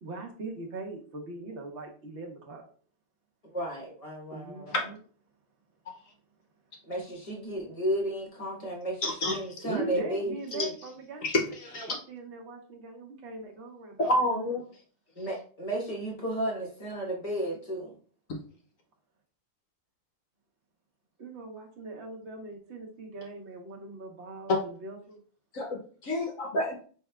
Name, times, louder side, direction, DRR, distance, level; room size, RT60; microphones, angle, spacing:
voice 1, 0.0-2.7 4.3-4.9 9.6-11.5 11.9-14.1 21.2-25.2, right 2 dB, 45° right, 1 dB, 1.0 m, -40 dB
voice 2, 3.5-4.7 6.9-10.7 15.2-17.9, right 1 dB, 25° left, -2 dB, 0.9 m, -33 dB
voice 3, 9.0-9.5 10.6-10.7 11.2-11.9 14.0-14.6 24.5-24.6 25.5-26.9, left 1 dB, 60° left, 1 dB, 0.9 m, -28 dB
5.4 x 3.5 x 2.3 m, 0.43 s
omnidirectional pair, 2.0 m